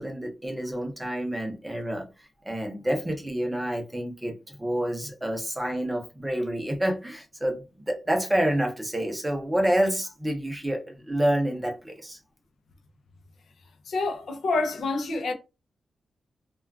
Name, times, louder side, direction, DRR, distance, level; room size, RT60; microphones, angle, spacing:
voice 1, 0.0-12.2, right 1 dB, 10° right, 0.6 m, -28 dB
voice 2, 13.9-15.3, left 3 dB, 80° left, 0.5 m, -27 dB
2.4 x 2.2 x 3.4 m
wide cardioid pair, 150°, 0 cm